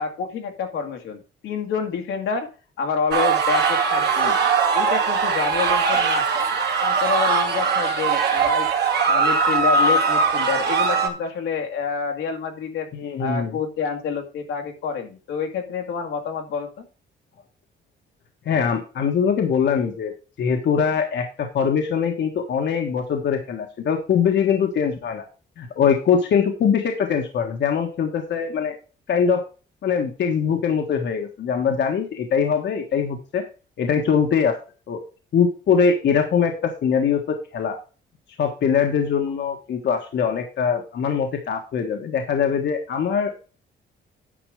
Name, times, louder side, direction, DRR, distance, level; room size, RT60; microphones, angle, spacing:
voice 1, 0.0-2.5 2.8-4.4 4.7-6.3 6.8-8.7 9.1-12.9 13.2-16.9, left 5 dB, 85° left, 3 dB, 2.1 m, -28 dB
sound 1, 3.1-11.1, right 5 dB, 55° right, 2.2 m, -20 dB
voice 2, 12.9-13.6 18.4-20.1 20.4-25.2 25.6-28.8 29.1-29.4 29.8-33.4 33.8-34.6 34.9-35.0 35.3-37.8 38.4-43.5, left 7 dB, 60° left, 3 dB, 1.5 m, -22 dB
10.0 x 5.2 x 4.9 m, 0.34 s
cardioid pair, 90°, 20 cm